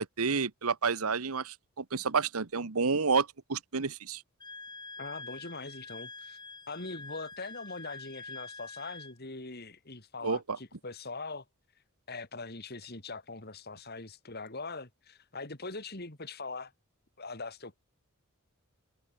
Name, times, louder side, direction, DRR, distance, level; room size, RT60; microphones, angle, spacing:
voice 1, 0.0-4.2 10.2-10.6, right 5 dB, 85° right, 1.1 m, -30 dB
Wind instrument woodwind instrument, 4.4-9.1, left 3 dB, 20° left, 5.2 m, -46 dB
voice 2, 5.0-6.4 6.7-11.4 12.1-16.7 17.2-17.7, left 3 dB, 45° left, 3.0 m, -42 dB
head